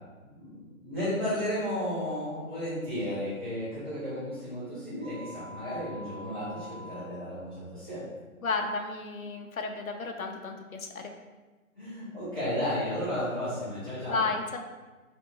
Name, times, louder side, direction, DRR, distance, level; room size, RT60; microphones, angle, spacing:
voice 1, 0.8-8.0 11.8-14.2, equal, 15° left, -16 dB, 1.0 m, -33 dB
sound 1, 5.0-7.0, equal, 50° left, 1.0 m, -45 dB
voice 2, 8.4-11.1 14.1-14.6, left 4 dB, 70° left, 4 dB, 0.7 m, -32 dB
3.4 x 3.0 x 3.9 m, 1.3 s
hypercardioid pair, 175°, 43 cm